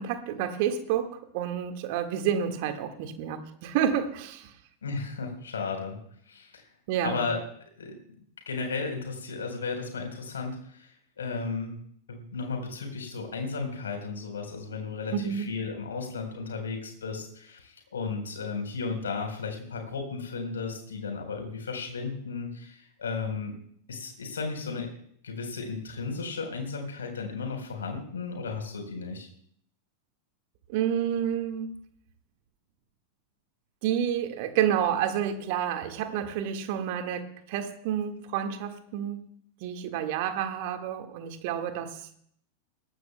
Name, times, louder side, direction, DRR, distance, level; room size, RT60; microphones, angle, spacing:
voice 1, 0.0-4.5 6.9-7.3 15.1-15.5 30.7-31.8 33.8-39.2 39.6-42.2, right 9 dB, 50° right, 7 dB, 1.7 m, -29 dB
voice 2, 4.8-6.0 6.3-6.6 7.0-7.4 7.8-8.0 8.5-11.8 12.1-23.6 23.9-24.9 25.2-29.3, left 4 dB, 70° left, 4 dB, 4.1 m, -34 dB
21.5 x 17.5 x 2.3 m, 0.64 s
figure-of-eight pair, 90°, 0 cm